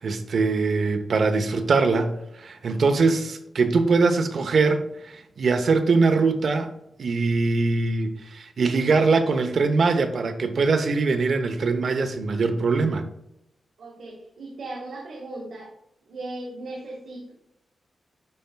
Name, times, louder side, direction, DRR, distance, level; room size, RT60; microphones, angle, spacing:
voice 1, 0.0-4.8 5.4-6.7 7.0-13.0, right 4 dB, 55° right, 7 dB, 0.8 m, -22 dB
voice 2, 13.8-15.7 16.1-17.3, right 2 dB, 80° right, -3 dB, 1.6 m, -37 dB
11.0 x 4.4 x 2.3 m, 0.80 s
wide cardioid pair, 150°, 0 cm